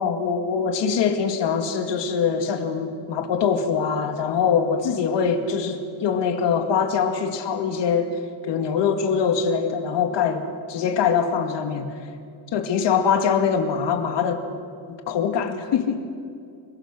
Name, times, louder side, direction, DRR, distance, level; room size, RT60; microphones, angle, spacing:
voice 1, 0.0-8.1 8.4-11.9 12.5-14.5 15.1-16.1, left 6 dB, 60° left, 6 dB, 2.3 m, -23 dB
25.0 x 21.5 x 6.2 m, 2.4 s
cardioid pair, 145°, 48 cm